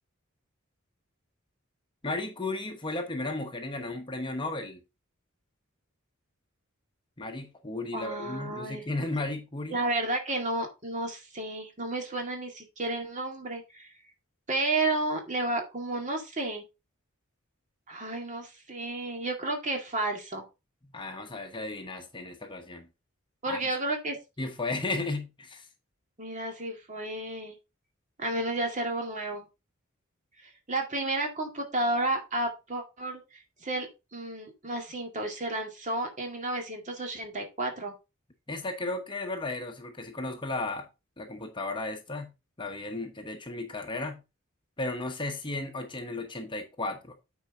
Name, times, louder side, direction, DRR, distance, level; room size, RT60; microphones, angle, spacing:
voice 1, 2.0-4.8 7.2-9.8 20.8-22.9 23.5-23.6 24.4-25.6 38.5-40.9 41.2-42.3 42.6-44.2 44.8-47.1, left 2 dB, 25° left, 1.1 m, -34 dB
voice 2, 7.9-8.8 9.7-13.9 14.5-16.6 17.9-20.4 23.4-24.2 26.2-27.6 28.2-29.5 30.4-33.2 33.6-33.9 34.1-37.9, right 2 dB, 35° right, 2.2 m, -32 dB
9.1 x 4.7 x 3.9 m
head